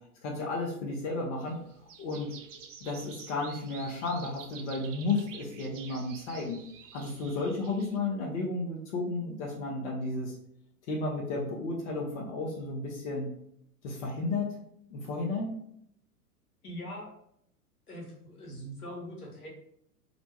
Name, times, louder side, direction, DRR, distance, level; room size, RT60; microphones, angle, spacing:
voice 1, 0.2-1.6 2.0-2.3 2.8-6.6 6.9-10.3 10.9-13.3 13.8-14.5 14.9-15.5, left 3 dB, 50° left, -2 dB, 0.7 m, -33 dB
sound 1, 1.4-8.0, right 7 dB, 55° right, 0.5 m, -49 dB
voice 2, 16.6-17.1 17.9-19.5, equal, 75° left, -2 dB, 1.1 m, -42 dB
2.5 x 2.2 x 3.0 m, 0.71 s
figure-of-eight pair, 100°, 45 cm